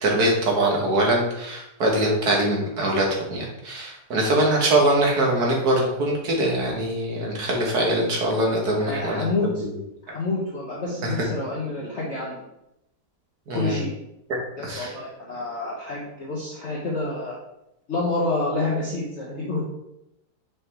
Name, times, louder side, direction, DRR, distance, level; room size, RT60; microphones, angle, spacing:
voice 1, 0.0-9.3 9.6-9.7 11.0-11.1 13.5-13.8 14.3-14.4 14.6-14.9, right 1 dB, 70° right, -1 dB, 1.9 m, -23 dB
voice 2, 8.7-9.6 10.1-12.4 13.5-13.9 14.6-17.3 17.9-19.6, left 2 dB, 45° left, -5 dB, 1.3 m, -28 dB
6.2 x 5.2 x 3.4 m, 0.85 s
omnidirectional pair, 1.8 m